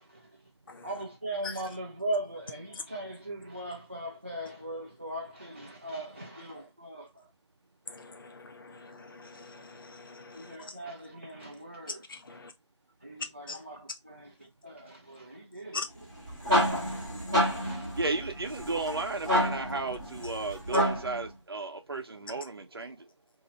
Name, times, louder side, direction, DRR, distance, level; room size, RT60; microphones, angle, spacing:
voice 1, 0.8-7.1 10.3-12.0 13.0-14.3 14.6-15.8 16.8-17.0 17.6-17.9, right 1 dB, 25° right, 0.4 m, -39 dB
voice 2, 8.9-10.5 12.3-12.5 13.5-13.6 15.7-15.9, left 4 dB, 45° left, 0.5 m, -41 dB
sound 1, 16.0-21.2, equal, 10° right, 0.9 m, -29 dB
voice 3, 18.0-23.0, right 3 dB, 55° right, 0.7 m, -34 dB
2.7 x 2.1 x 3.8 m
figure-of-eight pair, 175°, 16 cm